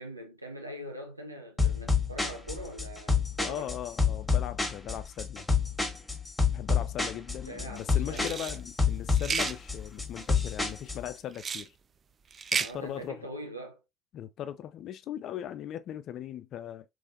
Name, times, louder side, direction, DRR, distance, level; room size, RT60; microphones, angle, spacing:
voice 1, 0.0-3.7 7.5-8.6 12.6-13.8, right 1 dB, 90° right, 0.7 m, -42 dB
sound 1, 1.6-11.1, left 5 dB, 10° left, 1.2 m, -28 dB
voice 2, 3.4-5.5 6.5-11.7 12.5-13.3 14.1-16.9, left 11 dB, 50° left, 0.4 m, -39 dB
sound 2, 8.1-8.6 9.1-9.5 11.3-11.7 12.3-12.7, right 6 dB, 35° right, 0.3 m, -32 dB
3.3 x 3.2 x 2.4 m
figure-of-eight pair, 60°, 0 cm